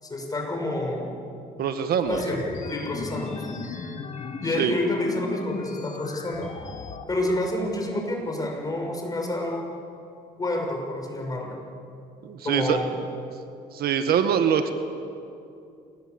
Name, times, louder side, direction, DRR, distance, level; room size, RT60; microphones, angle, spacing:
voice 1, 0.0-1.2 2.1-2.4 2.7-3.6 4.4-6.5 7.1-9.6 10.4-11.6 12.4-12.9, left 1 dB, 20° left, 2 dB, 6.4 m, -28 dB
voice 2, 1.6-2.2 4.6-4.7 12.2-12.8 13.7-14.7, right 8 dB, 65° right, 8 dB, 1.7 m, -23 dB
sound 1, 2.0-7.0, left 4 dB, 45° left, 2.6 m, -36 dB
27.5 x 20.5 x 8.1 m, 2.6 s
cardioid pair, 110°, 17 cm